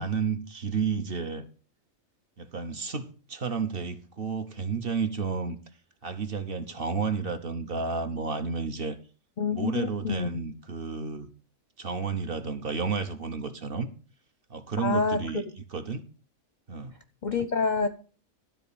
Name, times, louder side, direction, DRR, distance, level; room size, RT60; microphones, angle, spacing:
voice 1, 0.0-1.5 2.4-5.6 6.0-9.0 9.5-11.3 11.8-13.9 14.5-16.0 16.7-16.9, right 5 dB, 50° right, 0.9 m, -31 dB
voice 2, 9.4-10.3 14.8-15.2 17.2-17.9, left 5 dB, 45° left, 0.6 m, -27 dB
12.5 x 4.2 x 7.0 m
omnidirectional pair, 1.4 m